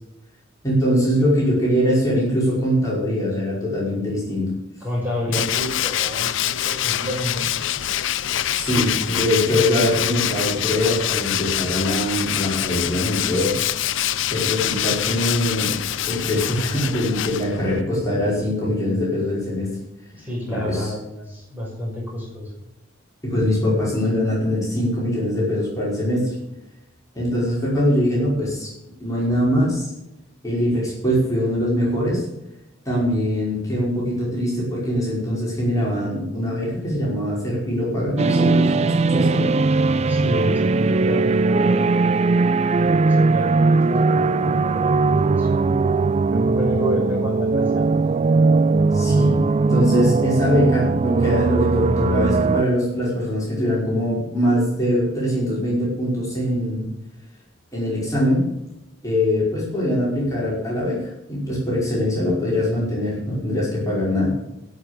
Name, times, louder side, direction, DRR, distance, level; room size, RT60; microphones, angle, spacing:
voice 1, 0.6-4.5 8.5-13.6 14.3-15.8 16.1-19.8 20.5-20.9 23.2-26.3 27.2-28.7 29.0-29.9 30.4-32.2 32.9-39.5 48.9-49.4 49.7-56.9 57.7-58.5 59.0-64.4, left 1 dB, 15° left, -6 dB, 5.4 m, -22 dB
voice 2, 4.8-7.5 20.1-22.5 40.1-42.0 43.1-45.7 46.3-47.9, left 1 dB, 10° right, -4 dB, 5.9 m, -30 dB
Tools, 5.3-17.8, left 11 dB, 70° left, 0.6 m, -25 dB
sound 1, 38.2-52.7, right 3 dB, 35° right, 0.3 m, -19 dB
16.5 x 6.9 x 6.9 m, 0.88 s
head